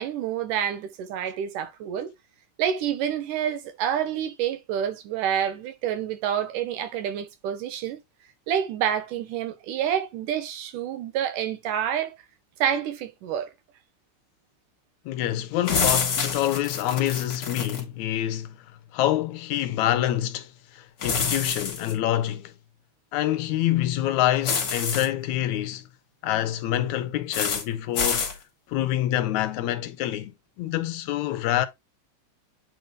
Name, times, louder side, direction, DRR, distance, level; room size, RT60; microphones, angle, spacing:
voice 1, 0.0-2.1 2.6-8.0 8.5-12.1 12.6-13.5, right 9 dB, 90° right, 2.7 m, -28 dB
voice 2, 15.1-18.7 18.9-22.5 23.1-25.8 26.2-28.3 28.7-30.3 30.6-31.7, left 13 dB, 80° left, 1.8 m, -26 dB
sound 1, 15.7-17.8 21.0-21.9 24.4-25.1 27.3-27.6 28.0-28.3, left 5 dB, 40° left, 2.1 m, -27 dB
9.0 x 3.4 x 3.7 m
omnidirectional pair, 3.6 m